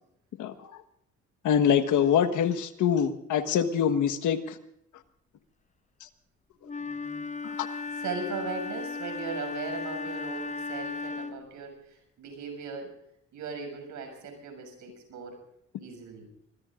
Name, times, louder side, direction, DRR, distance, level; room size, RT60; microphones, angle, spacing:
voice 1, 0.4-0.7 1.4-4.6 7.4-7.7, left 8 dB, 80° left, 8 dB, 1.5 m, -25 dB
Wind instrument woodwind instrument, 6.6-11.5, left 4 dB, 25° left, 1.0 m, -36 dB
voice 2, 6.8-7.3 8.0-12.9 13.3-15.4 15.8-16.3, right 4 dB, 80° right, 5 dB, 6.9 m, -38 dB
25.0 x 22.0 x 2.5 m, 0.75 s
cardioid pair, 90°, 30 cm